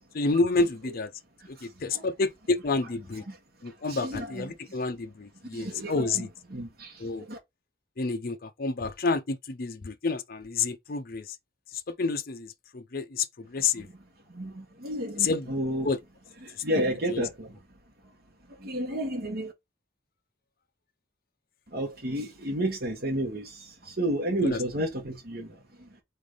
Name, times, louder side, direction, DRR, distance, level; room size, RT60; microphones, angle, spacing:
voice 1, 0.1-1.1 1.5-3.2 3.6-6.3 7.0-7.2 8.0-11.4 11.9-13.9 15.2-15.5 15.8-16.0 17.1-17.2 24.4-24.6, left 3 dB, 50° left, 0.6 m, -29 dB
voice 2, 1.6-2.1 3.3-3.4 3.9-4.5 5.5-6.2 6.5-7.4 13.8-13.9 14.3-15.9 16.4-17.6 18.5-19.5 21.7-25.9, right 1 dB, 50° right, 1.4 m, -32 dB
4.1 x 3.4 x 3.8 m
head